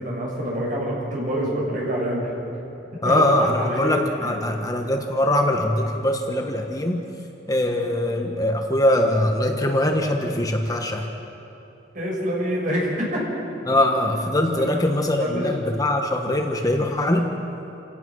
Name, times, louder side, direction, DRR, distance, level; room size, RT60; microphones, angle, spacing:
voice 1, 0.0-2.2 3.0-4.4 11.9-13.2 14.6-14.7 15.2-15.4, equal, 50° right, -4 dB, 6.8 m, -26 dB
voice 2, 3.0-7.0 7.5-11.1 13.7-17.3, left 1 dB, 20° left, 3 dB, 1.2 m, -22 dB
28.0 x 17.0 x 6.3 m, 2.9 s
head